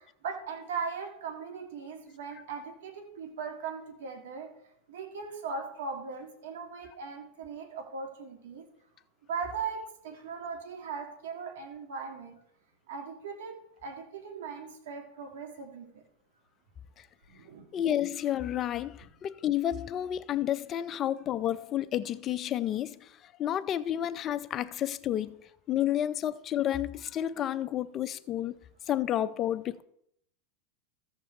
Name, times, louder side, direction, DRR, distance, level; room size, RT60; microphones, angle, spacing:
voice 1, 0.0-4.5 4.9-8.7 9.3-12.4 12.9-16.0 17.3-17.7, right 5 dB, 80° right, 1.7 m, -39 dB
voice 2, 17.7-25.4 25.7-28.6 28.9-29.8, left 11 dB, 35° left, 0.4 m, -31 dB
14.5 x 7.3 x 3.1 m
supercardioid pair, 130°, 0 cm